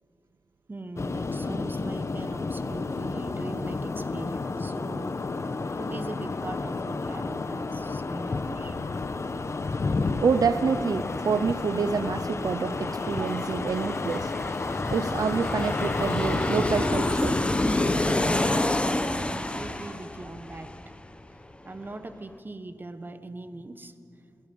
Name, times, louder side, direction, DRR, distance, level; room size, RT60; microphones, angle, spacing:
voice 1, 0.7-8.8 18.7-20.7 21.3-24.4, right 2 dB, 30° right, 9 dB, 1.2 m, -41 dB
sound 1, 1.0-18.6, left 3 dB, 45° left, 1.0 m, -31 dB
Aircraft, 9.9-10.0 10.2-21.5 21.8-21.9, left 1 dB, 15° left, 1.1 m, -29 dB
voice 2, 10.2-14.3 14.9-17.4, right 5 dB, 75° right, 12 dB, 0.6 m, -27 dB
28.0 x 17.0 x 5.5 m, 2.5 s
wide cardioid pair, 95°, 7 cm